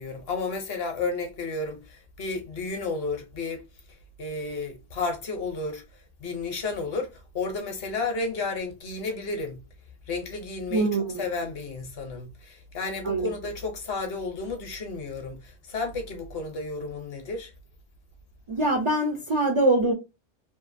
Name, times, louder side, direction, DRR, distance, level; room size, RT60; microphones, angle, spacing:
voice 1, 0.0-3.6 4.2-5.8 6.2-9.6 10.1-10.9 11.1-17.5, left 3 dB, 60° left, 0.9 m, -32 dB
voice 2, 10.7-11.3 13.0-13.3 18.5-19.9, right 2 dB, 55° right, 0.3 m, -23 dB
2.6 x 2.4 x 2.5 m
omnidirectional pair, 1.2 m